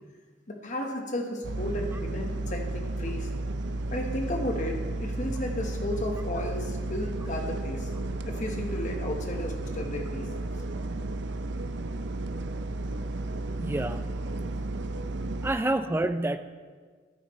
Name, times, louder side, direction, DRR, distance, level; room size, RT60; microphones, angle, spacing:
voice 1, 0.5-3.3 3.9-7.9 8.3-10.3 10.5-10.6, left 1 dB, 45° left, 2 dB, 1.2 m, -33 dB
sound 1, 1.4-15.5, right 2 dB, 65° right, 0.5 m, -33 dB
voice 2, 13.5-14.1 15.4-16.4, right 1 dB, 10° right, 10 dB, 0.4 m, -28 dB
12.5 x 9.8 x 3.1 m, 1.5 s
head